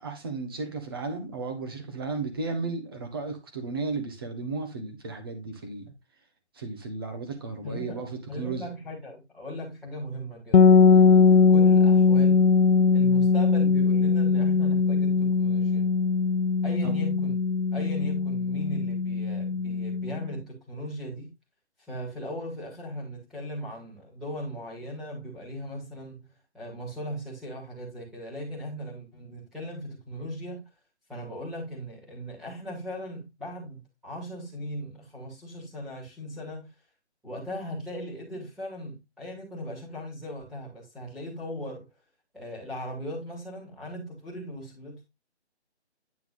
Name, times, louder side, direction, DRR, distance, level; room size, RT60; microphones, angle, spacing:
voice 1, 0.0-5.9 6.5-8.7 16.8-17.0, right 3 dB, 20° right, 1.3 m, -34 dB
voice 2, 7.6-8.0 8.3-12.5 12.9-15.9 16.6-17.4 17.7-21.3 21.9-26.3 26.5-30.6 31.1-36.7 37.2-41.8 42.3-45.0, equal, ahead, 2.2 m, -38 dB
sound 1, 10.5-20.3, left 5 dB, 85° left, 0.6 m, -20 dB
9.7 x 4.5 x 3.8 m
figure-of-eight pair, 165°, 34 cm